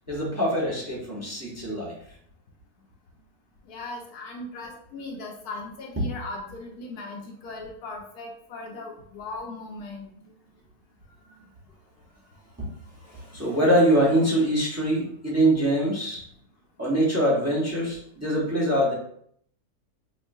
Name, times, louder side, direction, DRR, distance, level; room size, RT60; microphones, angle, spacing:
voice 1, 0.1-1.9 12.6-12.7 13.1-16.2 16.8-18.9, right 1 dB, 15° right, -4 dB, 0.7 m, -23 dB
voice 2, 3.7-10.1, left 2 dB, 80° left, 1 dB, 1.1 m, -38 dB
5.2 x 2.3 x 2.6 m, 0.66 s
omnidirectional pair, 1.6 m